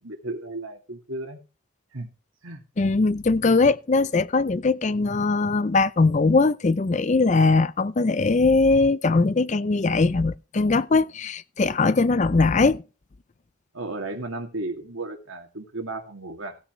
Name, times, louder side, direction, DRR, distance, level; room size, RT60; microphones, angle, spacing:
voice 1, 0.0-1.4 1.9-2.1 2.4-2.6 13.7-16.6, right 2 dB, 80° right, 2.5 m, -34 dB
voice 2, 2.8-12.8, left 3 dB, 35° left, 0.5 m, -21 dB
16.5 x 8.6 x 3.1 m
head